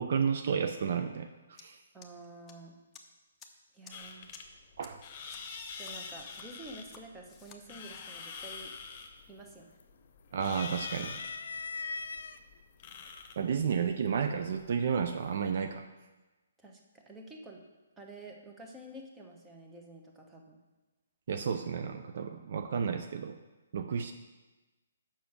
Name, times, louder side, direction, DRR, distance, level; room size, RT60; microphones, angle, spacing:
voice 1, 0.0-1.8 4.8-5.0 10.3-11.2 13.4-15.8 21.3-23.4 23.7-24.1, right 6 dB, 55° right, 8 dB, 0.5 m, -32 dB
sound 1, 1.6-1.7 2.0-2.5 2.9-3.0 3.4-3.5 3.8-3.9 4.3-4.4 4.8-4.9 5.3-5.4 5.8-6.4 6.8-7.0 7.3-7.6, left 6 dB, 15° left, 0.8 m, -52 dB
voice 2, 1.9-2.8 3.7-4.3 5.8-8.7 9.3-9.7 16.6-17.6 18.0-20.6, right 1 dB, 10° right, 1 dB, 1.1 m, -49 dB
sound 2, 3.9-15.7, left 5 dB, 35° left, 1.1 m, -47 dB
sound 3, 8.6-9.0 9.4-10.1 10.5-12.4 13.3-13.4 14.6-15.0, left 4 dB, 65° left, 0.5 m, -40 dB
6.9 x 5.8 x 6.5 m, 1.2 s
figure-of-eight pair, 135°, 0 cm